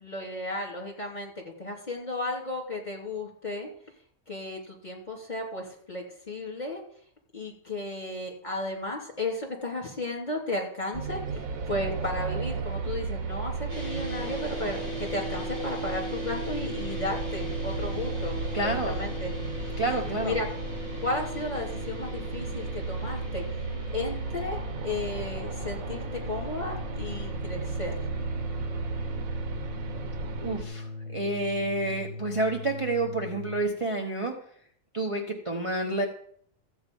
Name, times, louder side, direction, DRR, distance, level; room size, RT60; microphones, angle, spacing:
voice 1, 0.0-3.7 4.3-6.8 7.3-19.3 20.2-20.5 21.0-23.4 23.9-28.0, left 2 dB, 30° left, 0 dB, 3.0 m, -34 dB
sound 1, 10.9-30.6, right 4 dB, 90° right, 1.4 m, -35 dB
sound 2, 13.7-33.6, left 1 dB, 50° right, 5.1 m, -38 dB
voice 2, 18.5-19.0 19.8-20.4 30.4-34.3 34.9-36.1, right 2 dB, 25° right, 1 dB, 1.2 m, -29 dB
14.0 x 8.4 x 5.4 m, 0.62 s
omnidirectional pair, 1.4 m